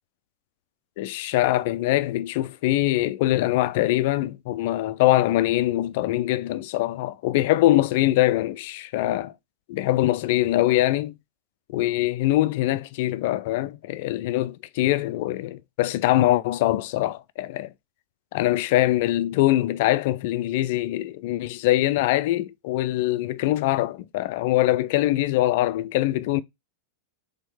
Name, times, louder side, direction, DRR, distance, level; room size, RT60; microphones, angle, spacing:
voice 1, 1.0-9.3 9.7-11.1 11.7-17.7 18.3-26.4, left 15 dB, 50° left, 0.4 m, -23 dB
4.4 x 3.5 x 3.3 m
figure-of-eight pair, 90°, 0 cm